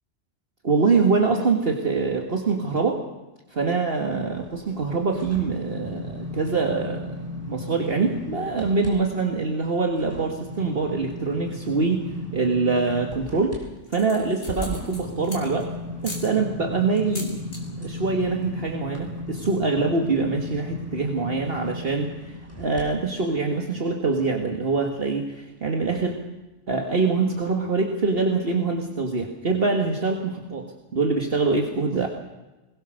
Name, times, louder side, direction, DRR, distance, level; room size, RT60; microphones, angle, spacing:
voice 1, 0.6-3.0 3.5-7.2 7.5-12.0 12.3-13.6 13.9-15.7 16.0-17.4 17.8-26.2 26.7-32.1, right 4 dB, 55° right, 3 dB, 1.8 m, -24 dB
sound 1, 4.3-8.9 9.3-22.8 23.3-23.4, left 2 dB, 10° right, 5.6 m, -36 dB
sound 2, 12.9-13.4 13.8-15.6 16.0-16.3 17.0-17.6 17.9-18.2 18.5-18.6 18.8-19.2, left 1 dB, 65° left, 4.7 m, -37 dB
21.5 x 20.5 x 6.4 m, 1.1 s
omnidirectional pair, 1.2 m